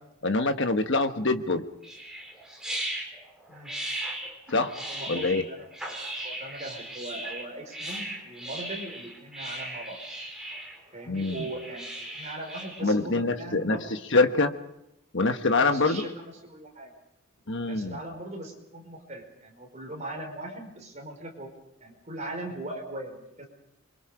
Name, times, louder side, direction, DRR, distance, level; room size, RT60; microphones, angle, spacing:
voice 1, 0.2-1.6 4.5-4.7 5.1-5.4 11.1-11.4 12.8-13.8 14.1-14.5 15.1-16.1 17.5-18.0, left 3 dB, 55° left, 8 dB, 1.3 m, -24 dB
sound 1, 1.8-12.8, right 1 dB, 5° right, 4.5 m, -37 dB
voice 2, 4.8-10.0 10.9-14.0 15.6-16.9 17.6-21.5 21.8-23.5, right 1 dB, 30° right, 2 dB, 5.0 m, -40 dB
27.5 x 24.0 x 5.1 m, 0.83 s
head